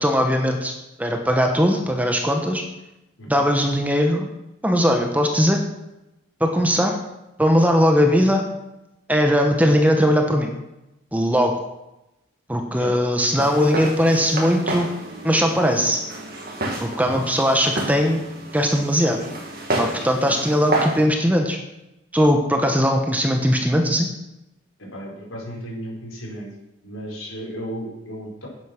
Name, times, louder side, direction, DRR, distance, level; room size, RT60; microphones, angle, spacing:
voice 1, 0.0-0.7 1.0-2.6 3.3-4.3 4.6-5.6 6.4-7.0 7.4-8.5 9.1-10.5 11.1-11.6 12.5-14.9 15.2-16.0 16.8-18.2 18.5-19.2 19.8-21.6 22.1-24.1, equal, 5° right, 3 dB, 1.2 m, -19 dB
Walk footsteps, 13.2-21.0, right 1 dB, 45° right, 2.5 m, -30 dB
voice 2, 24.8-26.5 26.8-28.5, equal, 75° left, -2 dB, 4.7 m, -34 dB
10.5 x 9.8 x 6.0 m, 0.91 s
head